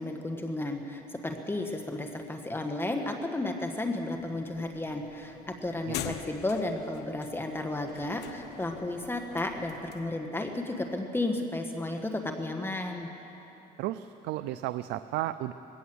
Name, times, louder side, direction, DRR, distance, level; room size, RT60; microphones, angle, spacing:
voice 1, 0.0-13.1, left 2 dB, 15° left, 3 dB, 1.6 m, -33 dB
sound 1, 4.2-10.1, left 10 dB, 80° left, 1.0 m, -44 dB
voice 2, 13.8-15.5, right 15 dB, 85° right, 12 dB, 0.5 m, -34 dB
22.0 x 17.0 x 7.9 m, 3.0 s
cardioid pair, 110°, 17 cm